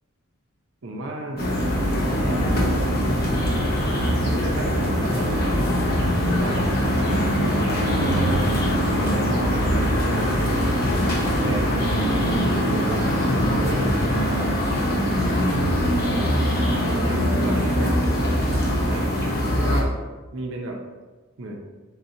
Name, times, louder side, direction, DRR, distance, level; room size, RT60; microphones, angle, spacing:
voice 1, 0.8-1.5 2.0-2.6 4.2-5.4 6.2-7.2 7.8-8.5 9.7-10.7 11.4-11.9 12.4-14.0 16.0-18.0 18.8-19.2 19.5-19.9 20.3-20.8 21.4-21.6, right 2 dB, 60° right, 0 dB, 0.6 m, -33 dB
sound 1, 1.4-19.8, equal, 45° left, 0.8 m, -22 dB
4.2 x 4.0 x 2.7 m, 1.2 s
head